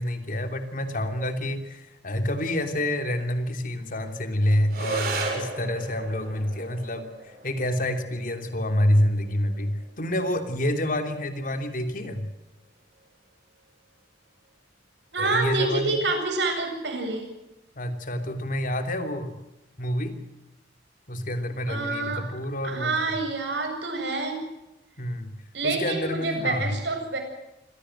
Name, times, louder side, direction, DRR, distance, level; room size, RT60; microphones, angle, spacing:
voice 1, 0.0-12.3 15.2-16.0 17.7-19.3 19.8-20.2 21.1-23.2 25.0-25.4 25.6-26.8, left 1 dB, 50° left, 7 dB, 3.1 m, -28 dB
sound 1, 4.7-13.7, right 3 dB, 55° right, 6.9 m, -38 dB
voice 2, 15.1-17.3 21.7-22.2 22.6-24.4 25.5-27.2, right 3 dB, 75° right, 4 dB, 7.8 m, -27 dB
26.0 x 17.5 x 7.8 m, 0.93 s
head